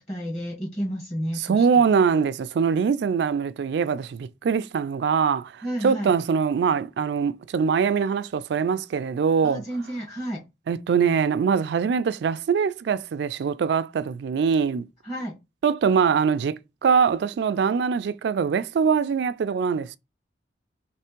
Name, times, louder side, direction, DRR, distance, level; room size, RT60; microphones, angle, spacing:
voice 1, 0.0-1.8 5.6-6.1 9.4-10.5 15.0-15.3, equal, 35° left, 1.4 m, -31 dB
voice 2, 1.5-9.6 10.7-14.8 15.6-20.0, right 6 dB, 65° right, 0.3 m, -23 dB
3.3 x 3.2 x 4.4 m
head